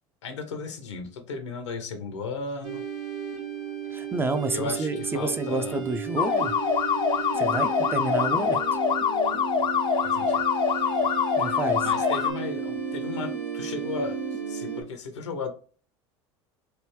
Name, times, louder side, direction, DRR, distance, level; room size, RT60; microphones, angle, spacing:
voice 1, 0.2-2.8 4.5-5.8 10.0-10.4 11.8-15.5, left 4 dB, 90° left, 0.8 m, -35 dB
sound 1, 2.6-14.8, right 5 dB, 90° right, 1.3 m, -33 dB
voice 2, 3.9-6.6 7.4-8.6 11.4-11.9, right 2 dB, 15° right, 0.4 m, -29 dB
sound 2, 6.2-12.3, left 6 dB, 35° left, 0.5 m, -25 dB
3.3 x 2.6 x 3.0 m
hypercardioid pair, 85°, 15 cm